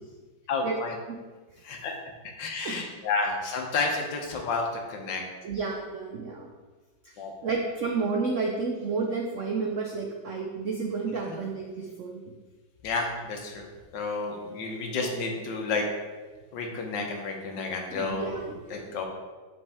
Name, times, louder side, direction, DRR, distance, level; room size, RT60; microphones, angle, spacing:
voice 1, 0.5-1.0 1.6-1.9 2.2-5.2 7.2-7.3 11.2-11.4 12.8-13.7 13.9-15.8 16.5-18.4 18.7-19.1, left 4 dB, 70° left, 2 dB, 1.6 m, -31 dB
voice 2, 2.6-3.0 5.4-6.5 7.4-12.3 17.9-18.8, right 4 dB, 80° right, 0 dB, 0.6 m, -31 dB
6.2 x 5.3 x 3.5 m, 1.4 s
omnidirectional pair, 2.1 m